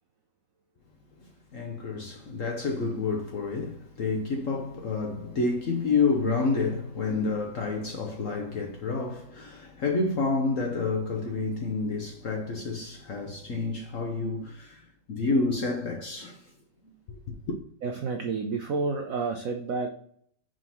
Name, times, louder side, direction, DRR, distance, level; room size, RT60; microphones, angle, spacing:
voice 1, 1.5-16.4 17.3-17.6, left 3 dB, 60° left, 0.9 m, -29 dB
voice 2, 17.8-19.9, right 4 dB, 75° right, 0.7 m, -30 dB
5.0 x 3.8 x 5.6 m
omnidirectional pair, 2.2 m